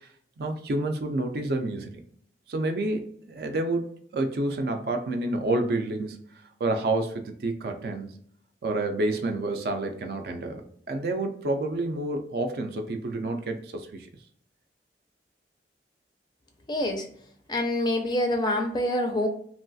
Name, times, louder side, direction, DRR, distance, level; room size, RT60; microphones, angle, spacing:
voice 1, 0.4-1.9 2.5-6.2 6.6-8.1 8.6-14.1, right 2 dB, 55° right, 5 dB, 0.4 m, -29 dB
voice 2, 16.7-17.1 17.5-19.3, left 1 dB, 25° left, 4 dB, 0.4 m, -26 dB
3.0 x 2.3 x 2.6 m, 0.63 s
head